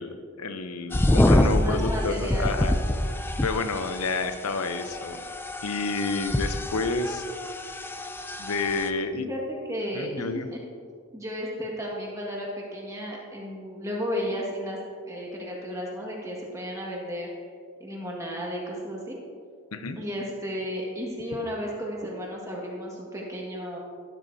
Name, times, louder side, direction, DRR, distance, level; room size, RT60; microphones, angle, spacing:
voice 1, 0.0-2.7 3.2-5.2 5.6-7.2 8.4-9.3 9.9-10.5 19.7-20.0, left 3 dB, 90° left, 8 dB, 0.8 m, -30 dB
sound 1, 0.9-8.9, left 1 dB, 10° left, 0.3 m, -26 dB
voice 2, 1.4-2.8 9.1-10.6 11.1-14.8 15.1-17.3 17.8-19.2 20.0-23.8, equal, 15° right, -3 dB, 1.9 m, -33 dB
12.5 x 12.5 x 2.8 m, 2.2 s
head